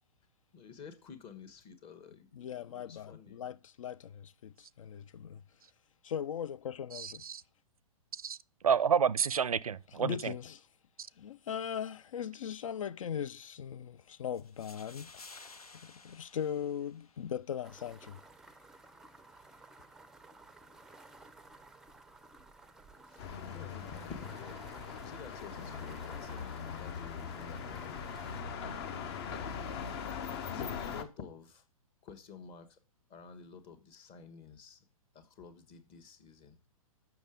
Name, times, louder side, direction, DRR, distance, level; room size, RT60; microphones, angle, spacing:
voice 1, 0.5-3.5 23.0-24.7 25.0-28.6 29.3-29.5 30.5-31.6 32.0-32.8 33.1-34.8 35.1-36.6, left 6 dB, 30° left, 1.4 m, -51 dB
voice 2, 2.3-5.4 6.0-7.2 10.0-10.7 11.2-15.3 15.8-18.2, left 8 dB, 65° left, 0.4 m, -39 dB
voice 3, 6.9-7.4 8.1-8.4 8.6-10.3, right 7 dB, 80° right, 0.4 m, -29 dB
sound 1, 14.3-17.4, left 3 dB, 90° left, 0.8 m, -54 dB
sound 2, 17.6-28.4, right 3 dB, 5° right, 0.5 m, -55 dB
sound 3, 23.2-31.0, left 6 dB, 45° left, 1.0 m, -41 dB
7.1 x 5.9 x 5.1 m
figure-of-eight pair, 115°, 18 cm